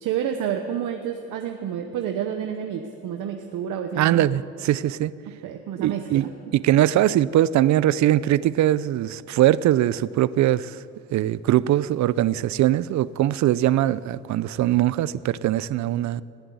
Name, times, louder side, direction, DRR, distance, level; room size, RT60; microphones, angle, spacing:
voice 1, 0.0-4.3 5.4-6.3, right 9 dB, 85° right, 1.0 m, -29 dB
voice 2, 4.0-5.1 5.8-10.8 11.1-16.2, right 13 dB, 70° right, 0.5 m, -21 dB
19.0 x 8.0 x 9.4 m
cardioid pair, 90°, 30 cm